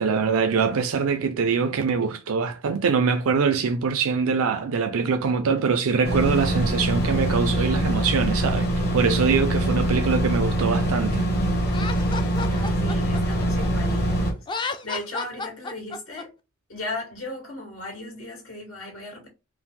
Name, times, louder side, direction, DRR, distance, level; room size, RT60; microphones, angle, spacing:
voice 1, 0.0-8.7 8.9-11.2, right 5 dB, 85° right, 0.4 m, -23 dB
sound 1, 6.0-14.3, right 1 dB, 45° left, 1.3 m, -23 dB
Laughter, 11.7-14.0 14.4-16.2, left 4 dB, 20° left, 0.3 m, -32 dB
voice 2, 12.5-16.3 16.7-19.3, left 2 dB, 75° left, 2.1 m, -36 dB
4.7 x 2.1 x 3.6 m
head